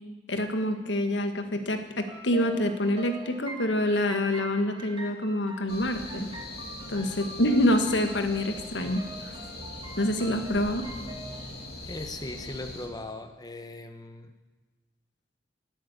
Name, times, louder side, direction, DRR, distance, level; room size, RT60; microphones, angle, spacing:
voice 1, 0.3-6.3 6.9-9.0 10.0-10.8, left 1 dB, 85° left, 6 dB, 1.7 m, -26 dB
sound 1, 2.1-11.4, right 1 dB, 30° right, 2.5 m, -44 dB
sound 2, 5.7-12.9, left 2 dB, 60° left, 2.9 m, -41 dB
voice 2, 11.8-14.3, left 2 dB, 20° left, 7 dB, 1.1 m, -39 dB
18.5 x 9.1 x 8.3 m, 1.2 s
head